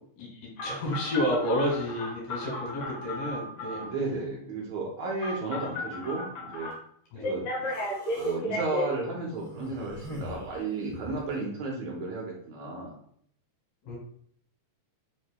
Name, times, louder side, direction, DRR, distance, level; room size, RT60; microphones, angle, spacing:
voice 1, 0.2-3.8 7.1-7.3 13.8-14.0, left 1 dB, 85° left, -4 dB, 3.6 m, -30 dB
Telephone, 0.6-3.9 5.2-6.7 7.2-8.9, left 1 dB, 70° left, 2.7 m, -34 dB
voice 2, 3.8-6.7 7.2-7.7 8.1-12.9, right 3 dB, 70° right, -2 dB, 1.8 m, -33 dB
Human voice, 7.6-8.4 9.3-11.3, left 2 dB, 25° right, 1.5 m, -43 dB
6.3 x 3.1 x 2.2 m, 0.63 s
omnidirectional pair, 3.7 m